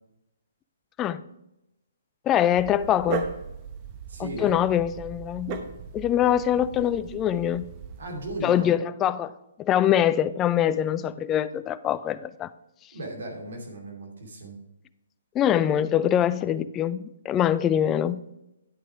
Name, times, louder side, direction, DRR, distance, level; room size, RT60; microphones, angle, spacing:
voice 1, 2.3-3.2 4.2-5.6 5.9-7.7 8.4-9.3 9.6-12.5 15.3-18.2, left 10 dB, 20° left, 15 dB, 0.4 m, -24 dB
Dog, 2.5-8.4, right 6 dB, 30° right, 0.9 m, -37 dB
voice 2, 4.1-4.6 6.2-6.3 8.0-8.7 12.9-14.6, right 1 dB, 70° right, 2 dB, 2.7 m, -36 dB
10.5 x 6.1 x 4.7 m, 0.88 s
hypercardioid pair, 150°, 0 cm